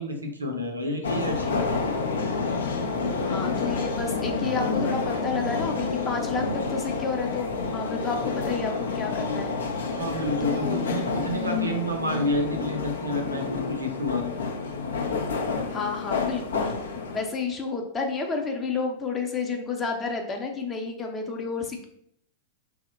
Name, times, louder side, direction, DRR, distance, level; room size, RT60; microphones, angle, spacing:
voice 1, 0.0-1.7 9.9-14.3, equal, 90° right, 3 dB, 0.5 m, -29 dB
sound 1, 1.0-17.2, left 4 dB, 70° left, 0.4 m, -29 dB
voice 2, 3.2-9.5 10.4-10.9 15.7-16.7 17.1-21.9, left 4 dB, 20° left, 2 dB, 0.5 m, -30 dB
2.9 x 2.1 x 3.9 m, 0.71 s
figure-of-eight pair, 95°, 0 cm